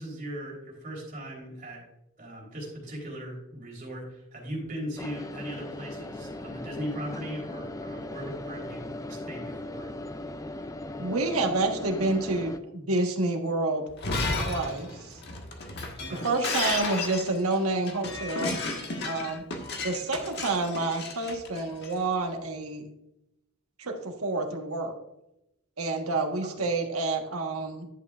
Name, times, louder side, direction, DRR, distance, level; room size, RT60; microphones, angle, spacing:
voice 1, 0.0-1.8 2.2-9.9 16.0-16.3 26.5-26.7, equal, 35° right, -2 dB, 3.6 m, -38 dB
sound 1, 5.0-12.6, left 2 dB, 15° left, 0.4 m, -38 dB
voice 2, 11.0-13.8 14.5-15.2 16.2-18.5 19.0-19.4 19.8-22.8 23.8-24.9 25.8-27.9, right 2 dB, 75° right, 3 dB, 1.4 m, -28 dB
Shatter, 13.9-21.9, left 3 dB, 50° left, 1.5 m, -33 dB
11.0 x 8.3 x 2.4 m, 0.85 s
head